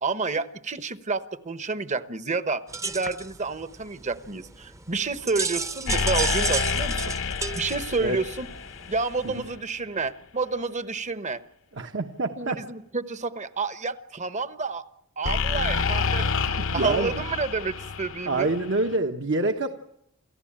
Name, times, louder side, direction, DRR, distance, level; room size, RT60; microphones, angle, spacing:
voice 1, 0.0-7.1 7.5-8.5 8.9-11.4 12.4-14.8 15.2-18.5, right 4 dB, 35° right, 12 dB, 1.1 m, -30 dB
sound 1, 2.7-9.6, right 4 dB, 15° right, 0.8 m, -33 dB
sound 2, 5.9-9.6 15.3-19.0, left 5 dB, 65° left, 0.9 m, -28 dB
voice 2, 11.7-12.6 16.6-17.2 18.3-19.7, right 2 dB, 60° right, 5 dB, 1.3 m, -26 dB
29.0 x 15.0 x 8.8 m, 0.79 s
head